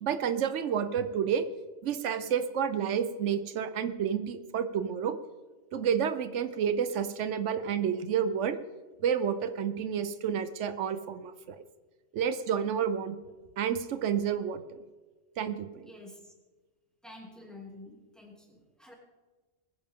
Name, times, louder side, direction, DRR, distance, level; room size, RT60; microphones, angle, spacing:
voice 1, 0.0-1.4 1.8-5.2 5.7-8.6 9.0-11.6 12.1-13.2 13.6-14.8 15.4-15.9, right 8 dB, 85° right, 11 dB, 1.1 m, -30 dB
voice 2, 15.8-16.3 17.0-18.9, left 2 dB, ahead, -1 dB, 2.7 m, -49 dB
20.5 x 10.0 x 3.7 m, 1.3 s
omnidirectional pair, 1.2 m